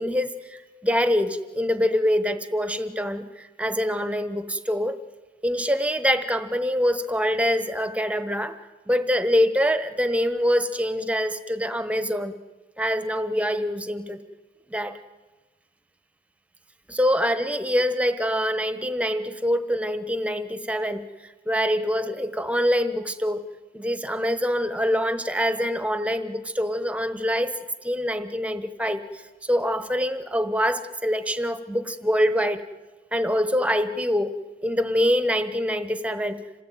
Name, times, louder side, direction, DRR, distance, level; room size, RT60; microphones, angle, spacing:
voice 1, 0.0-5.0 5.4-8.6 8.9-12.3 12.8-14.2 14.7-15.0 16.9-21.0 21.5-23.4 23.7-27.5 27.8-32.6 33.1-34.3 34.6-36.4, equal, 5° right, 11 dB, 1.1 m, -25 dB
27.0 x 18.0 x 9.3 m, 1.2 s
head